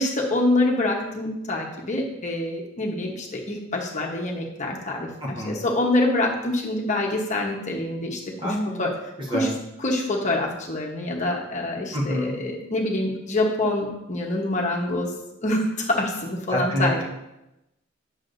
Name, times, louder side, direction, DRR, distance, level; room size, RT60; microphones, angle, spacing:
voice 1, 0.0-5.1 5.5-8.9 9.3-9.5 9.8-15.1 15.4-17.0, left 2 dB, 40° left, -1 dB, 1.1 m, -26 dB
voice 2, 5.2-5.6 8.4-8.9 9.2-9.6 11.9-12.3 16.5-17.0, equal, 25° right, -2 dB, 1.4 m, -26 dB
9.6 x 6.5 x 2.6 m, 0.91 s
head